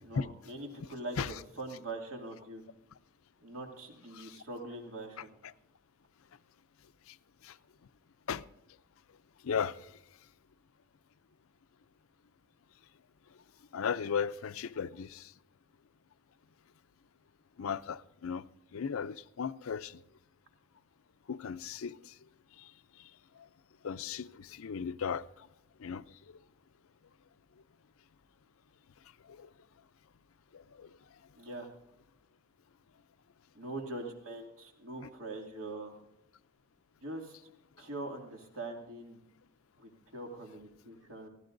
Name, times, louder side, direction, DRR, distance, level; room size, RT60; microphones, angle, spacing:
voice 1, 0.1-2.6 3.4-5.3 31.4-31.7 33.5-35.9 37.0-37.4 37.8-39.2 39.8-41.3, right 2 dB, 75° right, 2.5 m, -43 dB
voice 2, 9.4-9.8 13.7-15.3 17.6-18.4 18.7-20.0 21.3-22.0 22.6-22.7 23.8-25.2 25.8-26.0 29.3-29.5 30.5-30.9, left 6 dB, 75° left, 0.5 m, -36 dB
23.5 x 15.5 x 2.6 m
head